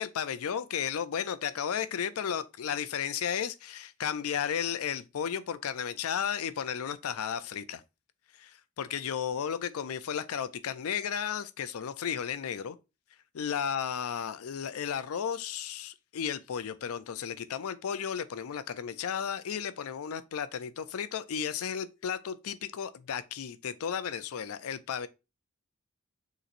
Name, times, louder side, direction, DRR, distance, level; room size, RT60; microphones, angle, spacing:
voice 1, 0.0-7.8 8.4-12.8 13.3-25.1, left 8 dB, 90° left, 0.4 m, -34 dB
6.6 x 3.0 x 2.5 m
head